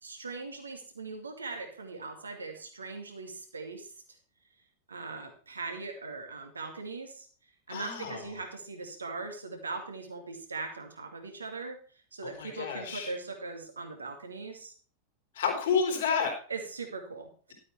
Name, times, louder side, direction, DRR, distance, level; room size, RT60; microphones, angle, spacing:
voice 1, 0.0-3.9 4.9-7.3 7.7-11.8 12.1-14.7 16.5-17.5, right 3 dB, 75° right, 4 dB, 2.5 m, -40 dB
voice 2, 7.7-8.2 12.4-13.1 15.4-16.3, left 6 dB, 60° left, 1 dB, 3.9 m, -29 dB
12.5 x 8.5 x 4.5 m, 0.42 s
figure-of-eight pair, 90°, 0 cm